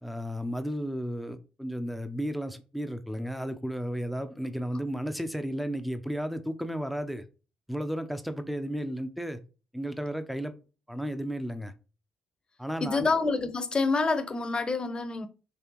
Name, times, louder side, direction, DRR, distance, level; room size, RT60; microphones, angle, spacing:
voice 1, 0.0-7.2 7.7-9.4 9.7-10.5 10.9-11.7 12.6-13.1, equal, ahead, 0.7 m, -33 dB
voice 2, 12.8-15.3, left 3 dB, 35° left, 0.9 m, -27 dB
5.4 x 3.2 x 3.0 m
hypercardioid pair, 55°, 3 cm